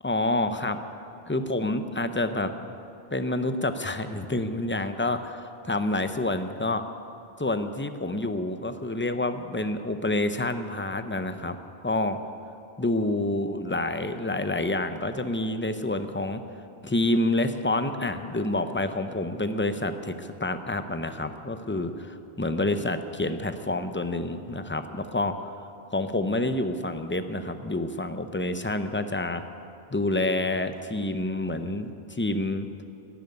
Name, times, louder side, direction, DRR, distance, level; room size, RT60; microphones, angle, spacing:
voice 1, 0.0-0.8 1.3-2.7 3.1-6.8 7.4-12.2 12.8-16.4 16.8-25.5 25.9-29.4 29.9-32.7, left 2 dB, 15° left, 9 dB, 0.6 m, -28 dB
12.5 x 10.5 x 9.6 m, 2.7 s
omnidirectional pair, 1.0 m